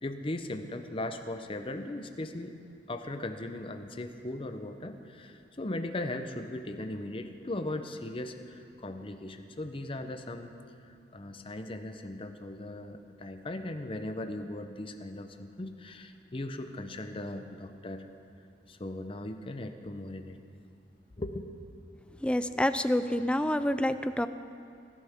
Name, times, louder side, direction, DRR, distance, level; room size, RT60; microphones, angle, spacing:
voice 1, 0.0-2.6 2.9-10.5 11.1-18.1 18.7-20.4 21.2-21.5, left 1 dB, 30° left, 7 dB, 0.7 m, -38 dB
voice 2, 22.2-24.3, left 1 dB, 5° left, 11 dB, 0.3 m, -27 dB
20.0 x 11.5 x 3.6 m, 2.5 s
head